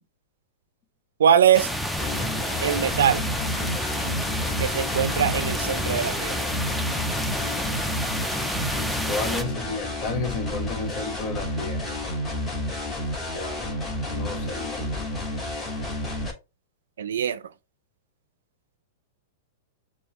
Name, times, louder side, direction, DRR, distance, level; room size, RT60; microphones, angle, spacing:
voice 1, 1.2-1.7 2.6-3.2 4.6-6.3 17.0-17.4, right 8 dB, 80° right, 0.4 m, -22 dB
sound 1, 1.5-9.4, equal, ahead, 0.5 m, -29 dB
sound 2, 2.0-16.3, left 1 dB, 20° left, 1.7 m, -30 dB
voice 2, 9.0-12.0 13.3-14.9, left 4 dB, 50° left, 1.3 m, -33 dB
6.9 x 2.3 x 3.0 m
hypercardioid pair, 120°, 0 cm